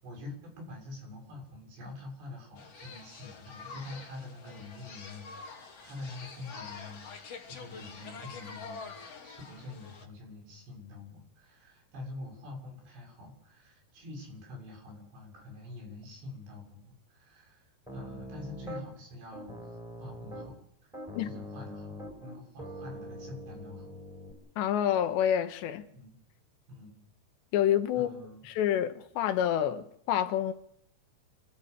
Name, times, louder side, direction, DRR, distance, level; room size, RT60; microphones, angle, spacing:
voice 1, 0.0-19.7 20.0-20.5 20.8-20.9 21.2-21.9 22.2-24.0 25.9-26.2 26.7-26.9 27.9-28.4, left 2 dB, 75° right, 9.1 m, -46 dB
sound 1, 2.6-10.1, left 5 dB, 40° left, 3.2 m, -46 dB
Piano, 17.9-18.8 19.3-20.6 20.9-24.3, equal, ahead, 5.1 m, -43 dB
voice 2, 24.6-25.9 27.5-28.1 28.5-30.5, left 10 dB, 85° left, 3.5 m, -28 dB
28.5 x 13.5 x 8.1 m
omnidirectional pair, 5.0 m